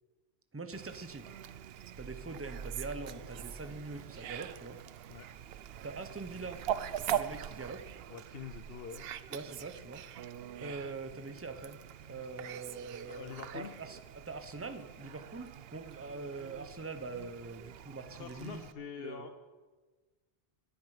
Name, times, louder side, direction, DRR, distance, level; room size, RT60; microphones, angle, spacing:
voice 1, 0.5-1.3 2.0-4.8 5.8-6.6 7.1-7.9 9.3-10.0 10.6-11.8 12.1-18.7 19.0-19.3, right 3 dB, 15° right, 8 dB, 0.8 m, -43 dB
Fowl, 0.7-18.7, right 10 dB, 75° right, 0.8 m, -43 dB
sound 1, 1.9-4.6, right 3 dB, 40° right, 1.0 m, -48 dB
voice 2, 8.1-9.1 13.1-13.7 18.1-19.5, left 7 dB, 70° left, 7 dB, 1.0 m, -45 dB
17.5 x 11.0 x 4.9 m, 1.3 s
omnidirectional pair, 1.0 m